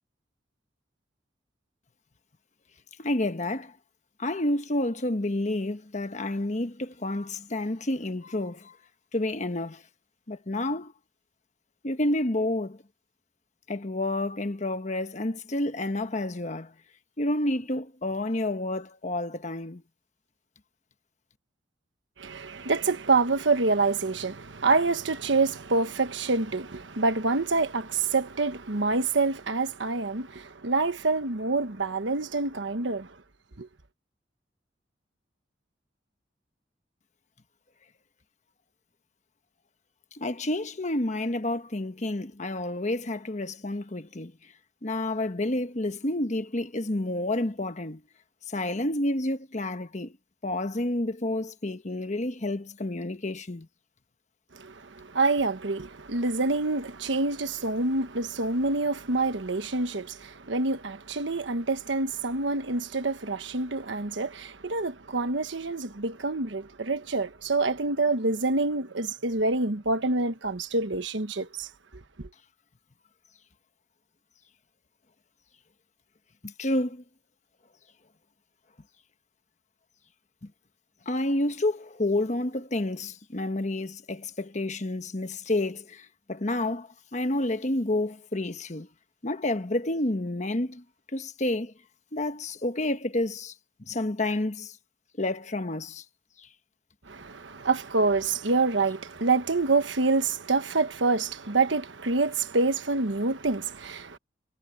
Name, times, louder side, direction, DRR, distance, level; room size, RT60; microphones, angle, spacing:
voice 1, 3.0-3.7 4.2-8.8 9.1-9.8 10.3-10.9 11.8-12.8 13.7-16.7 17.2-19.8 40.1-44.3 44.8-48.0 48.5-50.2 50.4-53.7 76.4-77.0 80.4-80.5 81.1-88.9 89.2-90.8 91.1-91.7 92.1-93.5 93.9-94.8 95.2-96.0 96.4-96.5, left 1 dB, 40° left, 1.2 m, -29 dB
voice 2, 22.2-33.1 33.6-33.7 54.5-71.7 72.2-72.3 97.1-104.2, right 3 dB, 80° right, 1.2 m, -27 dB
head